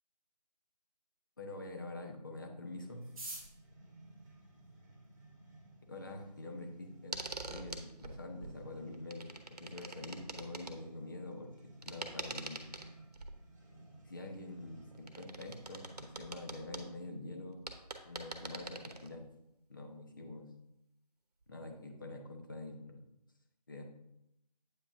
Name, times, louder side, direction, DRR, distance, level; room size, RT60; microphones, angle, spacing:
voice 1, 1.4-3.0 5.9-7.2 7.5-12.6 14.0-17.6 18.0-19.2 19.7-20.5 21.5-23.0 23.7-23.8, left 2 dB, 30° left, 3 dB, 0.8 m, -46 dB
sound 1, 2.7-16.4, right 1 dB, 25° right, 1.4 m, -57 dB
sound 2, 3.0-5.2 6.0-6.1 6.4-6.5 6.7-7.2 7.5-7.6 7.8-8.2 8.6-8.7 9.1-9.4, right 2 dB, 5° right, 1.1 m, -49 dB
sound 3, 7.1-8.5 8.8-10.7 11.8-13.4 14.9-16.8 17.4-17.5 17.7-19.3 21.4-21.5, right 3 dB, 65° right, 1.0 m, -44 dB
8.4 x 5.6 x 2.8 m, 0.84 s
figure-of-eight pair, 165°, 21 cm